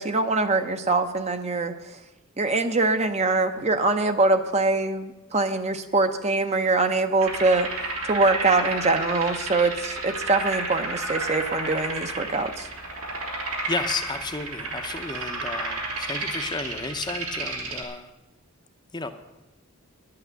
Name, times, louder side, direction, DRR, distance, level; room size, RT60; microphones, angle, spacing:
voice 1, 0.0-2.0 2.4-7.7 8.0-12.7, right 3 dB, 30° right, 8 dB, 0.7 m, -23 dB
sound 1, 7.2-17.8, right 2 dB, 85° right, 2.9 m, -31 dB
voice 2, 13.7-18.1 18.9-19.1, left 3 dB, 20° left, 7 dB, 0.7 m, -33 dB
11.0 x 8.6 x 8.1 m, 1.0 s
head